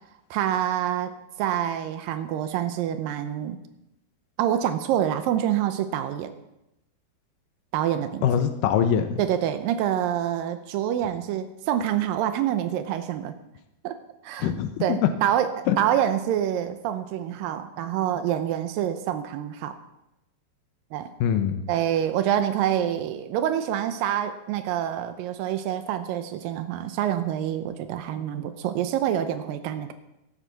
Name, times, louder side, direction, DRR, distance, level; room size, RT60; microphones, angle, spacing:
voice 1, 0.3-1.1 1.4-3.6 4.4-6.3 7.7-8.3 9.2-13.3 13.8-14.0 14.2-14.5 14.8-15.5 15.8-19.8 20.9-21.1 21.7-29.9, right 10 dB, 80° right, 9 dB, 2.1 m, -26 dB
voice 2, 8.2-9.2 14.4-15.1 15.7-15.8 21.2-21.7, left 9 dB, 80° left, 8 dB, 2.0 m, -23 dB
15.5 x 12.0 x 4.0 m, 0.91 s
omnidirectional pair, 4.8 m